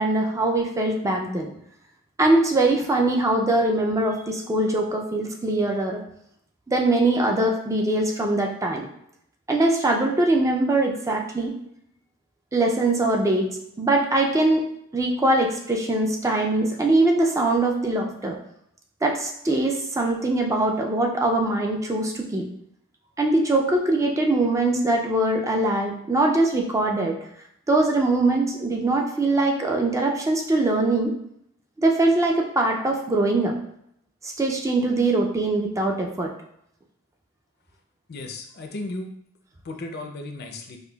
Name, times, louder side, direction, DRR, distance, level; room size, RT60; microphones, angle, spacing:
voice 1, 0.0-1.5 2.2-6.0 6.7-8.9 9.5-11.5 12.5-13.5 13.8-14.7 14.9-18.4 19.0-22.5 23.2-27.2 27.7-31.1 31.8-33.6 34.2-36.3, right 2 dB, 15° right, 1 dB, 0.3 m, -22 dB
voice 2, 38.1-39.1 39.6-40.8, left 2 dB, 50° left, 4 dB, 0.4 m, -35 dB
5.0 x 2.2 x 2.2 m, 0.72 s
head